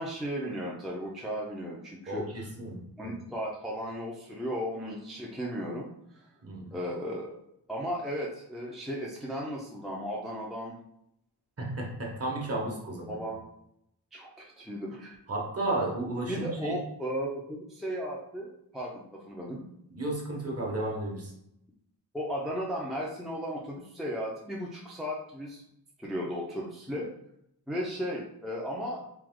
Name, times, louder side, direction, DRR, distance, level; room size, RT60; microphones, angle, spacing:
voice 1, 0.0-2.5 3.0-6.3 6.7-7.4 7.7-10.7 12.6-12.7 13.1-13.4 14.1-15.2 16.3-19.6 22.1-25.6 26.0-27.1 27.7-29.0, equal, ahead, -4 dB, 0.5 m, -35 dB
voice 2, 2.1-3.2 6.4-6.8 11.6-13.3 15.3-16.7 19.9-21.3, right 2 dB, 35° right, -2 dB, 1.0 m, -33 dB
3.4 x 2.9 x 3.6 m, 0.76 s
wide cardioid pair, 160°, 42 cm